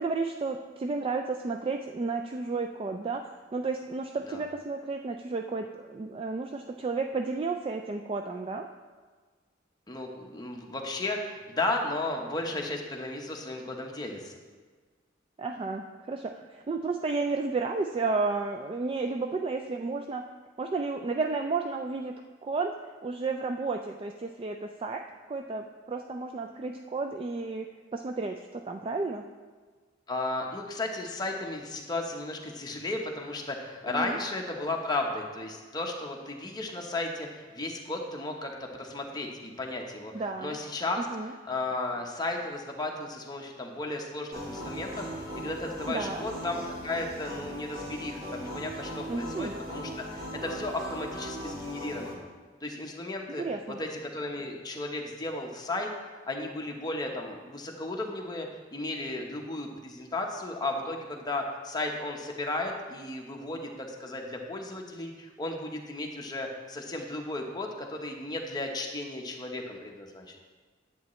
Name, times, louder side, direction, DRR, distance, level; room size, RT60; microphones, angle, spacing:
voice 1, 0.0-8.7 15.4-20.3 20.6-22.7 23.0-25.0 25.3-29.2 33.9-34.2 40.1-40.6 41.1-41.3 45.9-46.3 49.1-49.5 53.4-53.8, right 3 dB, 30° right, 4 dB, 0.3 m, -32 dB
voice 2, 9.9-14.3 30.1-40.1 40.4-41.1 41.5-52.3 52.6-70.4, left 2 dB, 20° left, 1 dB, 1.0 m, -34 dB
sound 1, 44.3-52.1, equal, 50° right, 1.9 m, -39 dB
10.0 x 8.4 x 3.1 m, 1.4 s
head